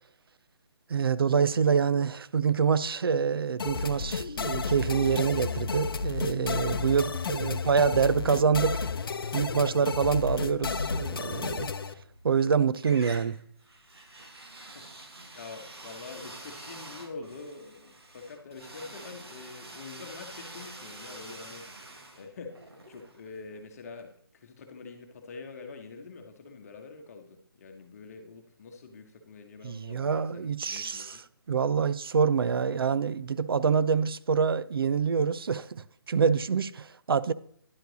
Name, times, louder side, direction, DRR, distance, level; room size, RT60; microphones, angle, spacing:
voice 1, 0.9-8.8 9.3-11.7 12.2-13.4 29.6-31.2 31.5-37.3, right 6 dB, 70° right, 0.5 m, -26 dB
sound 1, 3.6-11.9, left 4 dB, 65° left, 0.6 m, -32 dB
sound 2, 11.9-12.5 12.8-23.7, right 2 dB, 90° right, 1.7 m, -47 dB
voice 2, 15.2-21.8 22.2-31.2, left 4 dB, 40° left, 1.1 m, -45 dB
10.5 x 4.5 x 4.0 m
hypercardioid pair, 160°, 13 cm